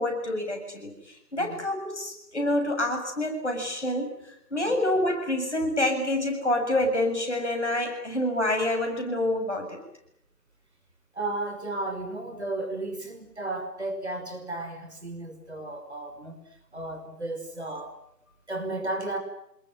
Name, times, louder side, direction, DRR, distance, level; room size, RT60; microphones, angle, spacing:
voice 1, 0.0-4.1 4.5-9.8, left 1 dB, 45° left, 3 dB, 7.4 m, -27 dB
voice 2, 11.1-16.4 16.7-17.9 18.5-19.2, right 2 dB, 40° right, 5 dB, 5.9 m, -34 dB
27.5 x 21.5 x 9.1 m, 0.79 s
figure-of-eight pair, 170°, 50 cm